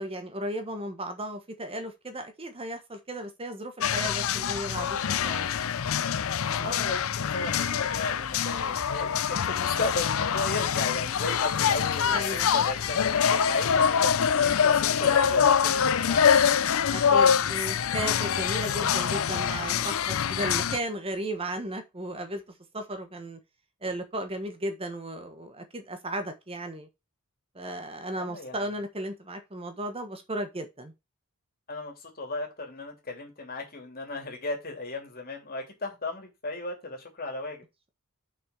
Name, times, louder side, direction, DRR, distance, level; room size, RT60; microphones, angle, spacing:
voice 1, 0.0-5.5 6.5-6.9 12.1-12.5 16.9-22.4 22.7-23.4 23.8-26.9 27.5-30.9, right 1 dB, 25° right, 1.2 m, -35 dB
sound 1, 3.8-20.8, left 7 dB, 65° left, 0.5 m, -25 dB
voice 2, 6.6-16.8 28.2-28.6 31.7-37.6, left 2 dB, 40° left, 3.1 m, -35 dB
6.3 x 6.0 x 4.6 m
head